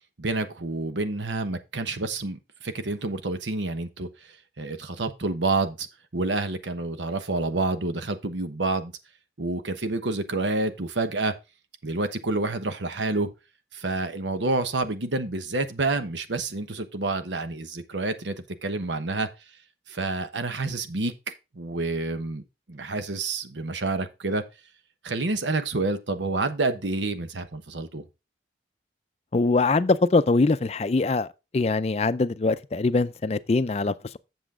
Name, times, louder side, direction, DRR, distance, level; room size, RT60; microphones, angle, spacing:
voice 1, 0.2-4.1 4.6-5.9 6.1-8.9 9.4-11.3 11.8-13.3 13.7-18.3 18.6-19.3 19.9-21.1 21.5-22.4 22.7-24.4 25.0-28.0, right 3 dB, 90° right, 1.0 m, -28 dB
voice 2, 29.3-31.3 31.5-34.2, left 3 dB, 35° left, 0.4 m, -23 dB
8.1 x 7.0 x 3.7 m
head